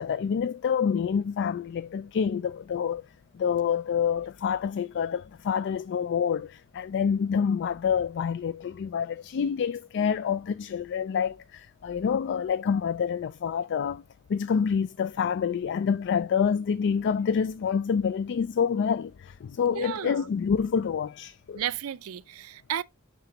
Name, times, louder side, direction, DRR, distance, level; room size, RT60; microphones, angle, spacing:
voice 1, 0.0-3.0 3.3-14.0 14.3-21.6, left 7 dB, 55° left, 0.3 m, -27 dB
voice 2, 19.7-20.2 21.5-22.8, right 10 dB, 90° right, 0.4 m, -33 dB
9.1 x 3.9 x 2.9 m
head